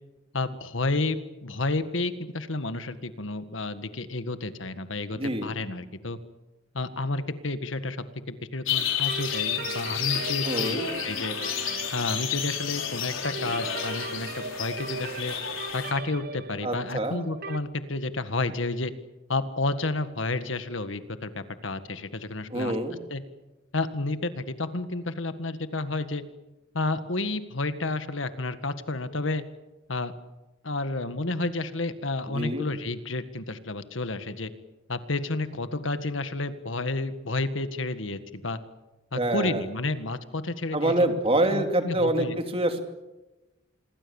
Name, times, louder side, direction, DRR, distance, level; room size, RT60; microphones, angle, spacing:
voice 1, 0.3-6.2 6.7-10.8 11.0-11.3 11.9-15.3 15.7-18.9 19.3-22.8 23.1-23.2 23.7-26.2 26.7-29.4 29.9-30.1 30.6-34.5 34.9-38.6 39.1-40.9 41.5-42.4, left 2 dB, 70° left, 10 dB, 1.8 m, -31 dB
voice 2, 5.1-5.6 10.4-10.9 16.6-17.3 22.5-23.0 32.3-32.7 39.1-39.6 40.7-42.3 42.5-42.8, right 1 dB, 30° right, 5 dB, 2.7 m, -26 dB
sound 1, 8.7-15.9, left 8 dB, 85° left, 4.8 m, -31 dB
sound 2, 9.1-17.6, right 3 dB, 50° right, 1.3 m, -39 dB
27.0 x 23.0 x 7.2 m, 1.0 s
head